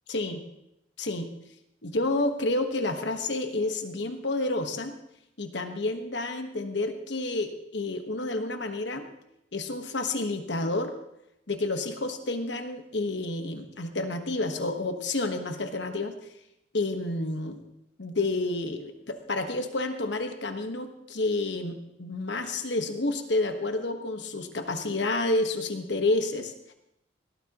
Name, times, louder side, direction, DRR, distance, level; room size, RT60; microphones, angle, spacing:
voice 1, 0.1-0.4 1.0-1.3 1.8-4.9 5.4-9.1 9.5-10.9 11.5-16.1 16.7-17.6 18.0-26.5, left 2 dB, 65° left, 6 dB, 1.3 m, -29 dB
18.5 x 13.5 x 3.0 m, 0.81 s
head